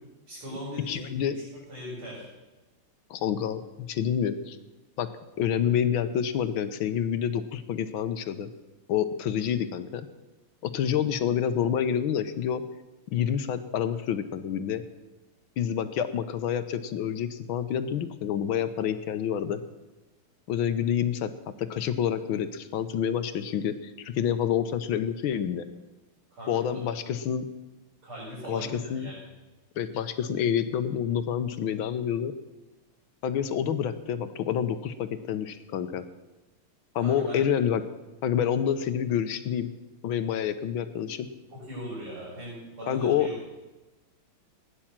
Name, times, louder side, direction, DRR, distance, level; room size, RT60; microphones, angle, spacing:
voice 1, 0.3-2.3 26.3-26.8 28.0-29.2 37.0-37.4 41.5-43.3, equal, 80° right, -10 dB, 6.9 m, -39 dB
voice 2, 0.9-1.4 3.1-4.6 5.0-5.1 5.4-8.5 8.9-10.1 10.6-12.6 13.1-14.8 15.6-19.6 20.5-21.3 21.6-25.6 26.5-27.5 28.5-29.1 29.8-32.3 33.2-36.0 36.9-37.8 38.2-39.7 40.0-41.3 42.9-43.3, left 9 dB, 70° left, 11 dB, 1.6 m, -28 dB
16.0 x 10.0 x 7.4 m, 1.1 s
omnidirectional pair, 2.4 m